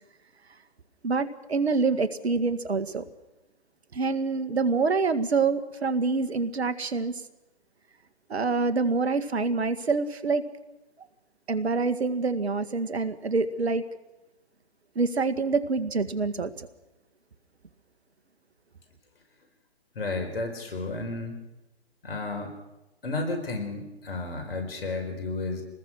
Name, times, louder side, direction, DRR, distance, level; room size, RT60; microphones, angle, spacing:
voice 1, 1.0-3.1 3.9-7.2 8.3-10.5 11.5-13.8 15.0-16.7, right 4 dB, 80° right, 12 dB, 1.9 m, -26 dB
voice 2, 19.9-21.4 22.0-22.5 23.0-25.6, left 3 dB, 65° left, 4 dB, 4.9 m, -32 dB
25.5 x 20.0 x 6.3 m, 0.99 s
hypercardioid pair, 140°, 32 cm